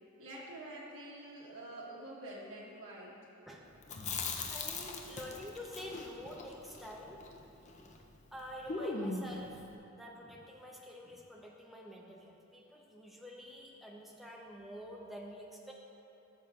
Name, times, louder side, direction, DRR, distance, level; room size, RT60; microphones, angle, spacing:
voice 1, 0.2-3.2, right 1 dB, 80° right, -6 dB, 1.4 m, -47 dB
voice 2, 3.5-4.1 4.5-7.2 7.8-7.9 8.3-15.7, equal, ahead, -2 dB, 0.7 m, -48 dB
Chewing mastication, 3.8-8.0 8.3-8.4 8.7-9.4, left 3 dB, 35° left, 0.6 m, -40 dB
13.0 x 6.9 x 2.4 m, 2.9 s
head